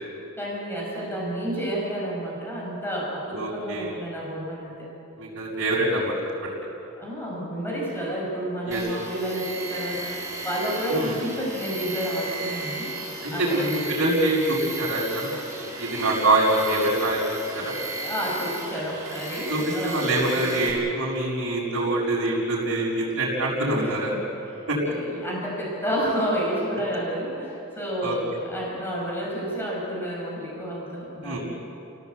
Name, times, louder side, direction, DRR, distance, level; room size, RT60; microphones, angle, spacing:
voice 1, 0.4-4.9 7.0-12.9 13.3-13.6 18.0-20.5 23.7-24.2 24.6-31.4, equal, 10° left, -4 dB, 6.1 m, -30 dB
voice 2, 3.3-3.9 5.2-6.5 8.7-8.8 10.9-11.2 13.2-17.2 17.5-17.7 19.5-24.1 24.7-24.8 28.0-28.1 31.2-31.4, right 1 dB, 60° right, -9 dB, 6.4 m, -25 dB
Tools, 8.7-20.7, right 2 dB, 15° right, 5.5 m, -35 dB
29.5 x 17.5 x 8.4 m, 3.0 s
head